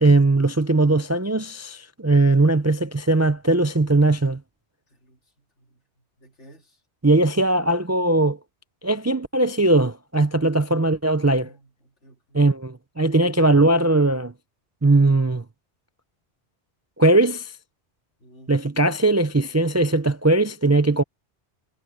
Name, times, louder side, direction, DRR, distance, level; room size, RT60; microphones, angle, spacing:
voice 1, 0.0-4.4 7.0-8.4 8.8-11.5 12.3-14.3 14.8-15.4 17.0-17.5 18.5-21.0, right 2 dB, 25° right, 0.3 m, -19 dB
voice 2, 4.9-6.8 11.2-12.4 18.2-18.7, equal, 85° left, 3.3 m, -54 dB
omnidirectional pair, 1.2 m